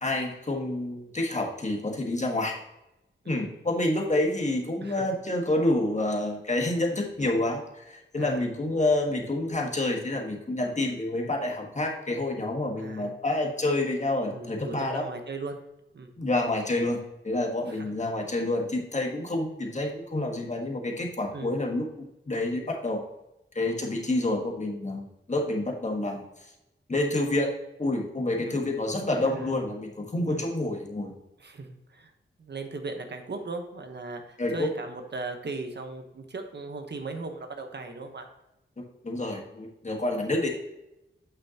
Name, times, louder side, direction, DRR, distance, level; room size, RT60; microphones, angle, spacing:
voice 1, 0.0-2.5 3.3-15.0 16.2-23.0 23.5-26.2 26.9-27.5 27.8-31.1 34.4-34.7 39.0-40.5, left 2 dB, 35° left, 1 dB, 1.4 m, -28 dB
voice 2, 8.2-8.5 12.8-13.1 14.3-15.6 15.9-16.1 17.7-17.9 21.3-21.6 28.5-28.8 29.2-29.5 30.3-30.5 31.4-32.1 32.4-38.3, right 3 dB, 60° right, 5 dB, 1.0 m, -38 dB
8.9 x 5.7 x 2.9 m, 0.91 s
wide cardioid pair, 115°, 20 cm